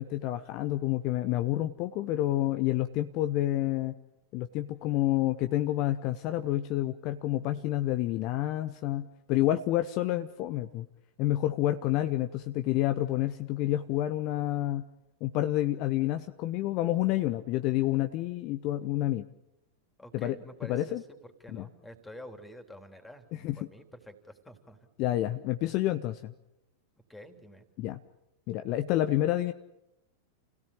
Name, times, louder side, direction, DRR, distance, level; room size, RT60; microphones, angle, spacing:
voice 1, 0.0-3.9 4.3-10.9 11.2-14.8 15.2-19.2 20.1-20.4 20.6-21.0 21.5-21.6 23.4-23.7 25.0-26.3 27.8-28.0 28.5-29.5, left 14 dB, 40° left, 10 dB, 0.9 m, -29 dB
voice 2, 20.0-24.9 27.1-27.7, left 1 dB, 5° left, 7 dB, 3.5 m, -49 dB
29.0 x 17.0 x 8.7 m, 0.92 s
figure-of-eight pair, 90°, 0 cm